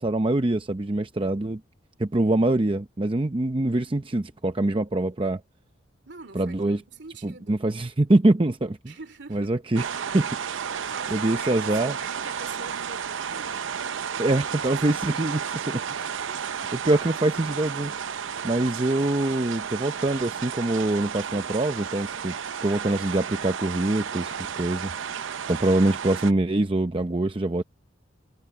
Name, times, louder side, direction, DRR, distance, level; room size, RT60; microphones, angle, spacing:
voice 1, 0.0-1.6 2.0-5.4 6.4-6.8 7.2-8.9 9.3-9.8 10.1-10.3 10.8-12.0 14.2-15.4 15.7-16.1 16.7-17.9 18.4-22.4 22.6-24.9 25.5-27.6, right 2 dB, 25° right, 0.7 m, -24 dB
voice 2, 6.0-7.7 8.9-9.5 10.6-13.6 14.7-15.2 16.3-16.6, right 4 dB, 60° right, 3.2 m, -44 dB
sound 1, 9.7-26.3, right 7 dB, 80° right, 0.6 m, -32 dB
head